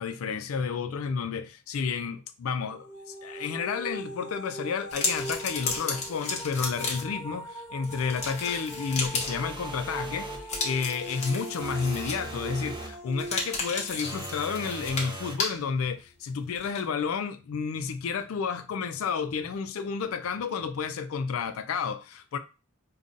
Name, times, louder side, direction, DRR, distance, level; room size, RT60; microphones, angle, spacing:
voice 1, 0.0-22.4, left 6 dB, 80° left, 0.4 m, -31 dB
sound 1, 2.7-15.5, right 1 dB, 10° left, 1.0 m, -41 dB
sound 2, 4.9-7.2 7.8-9.4 10.5-12.4 13.1-15.6 16.5-16.8, left 3 dB, 35° left, 0.8 m, -33 dB
sound 3, 9.2-10.5 11.6-13.0 14.0-15.5, right 1 dB, 25° right, 0.5 m, -40 dB
5.2 x 2.2 x 2.5 m
head